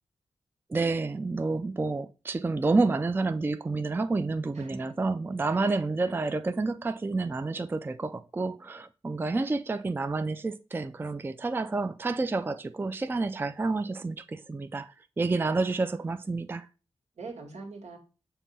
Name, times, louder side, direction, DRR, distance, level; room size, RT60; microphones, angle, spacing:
voice 1, 0.7-16.7, right 3 dB, 20° right, 0.3 m, -29 dB
voice 2, 4.5-4.9 5.5-5.7 6.0-6.3 17.2-18.0, right 3 dB, 90° right, 1.9 m, -43 dB
7.2 x 2.7 x 5.4 m
wide cardioid pair, 140°, 11 cm